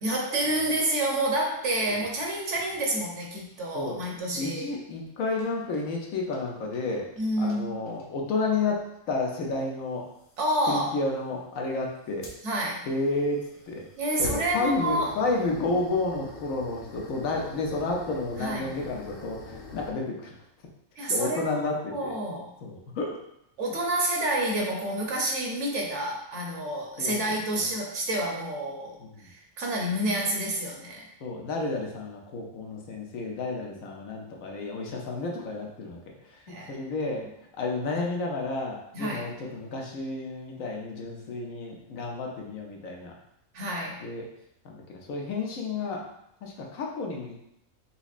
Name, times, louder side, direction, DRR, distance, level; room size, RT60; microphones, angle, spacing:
voice 1, 0.0-4.7 7.2-7.8 10.4-11.0 12.4-12.8 14.0-15.1 18.4-18.7 21.0-21.6 21.9-22.5 23.6-31.1 36.5-36.8 38.9-39.3 43.5-44.0, right 1 dB, 65° right, -1 dB, 1.0 m, -29 dB
sound 1, 2.0-3.6 3.9-4.1 5.3-5.8 6.3-6.4 6.7-7.2 7.5-7.6 7.9-8.3 9.4-9.5 10.2-10.4 12.2-19.9, left 2 dB, 60° left, 0.9 m, -44 dB
voice 2, 4.3-7.1 7.4-10.1 10.7-12.3 12.9-13.4 13.7-13.9 14.2-20.3 21.1-22.1 22.6-23.2 27.0-27.7 29.0-29.3 31.2-37.3 37.6-43.2 44.0-44.2 44.6-46.0 46.4-47.4, left 3 dB, 85° left, 0 dB, 1.1 m, -31 dB
5.6 x 2.0 x 2.4 m, 0.79 s
omnidirectional pair, 1.4 m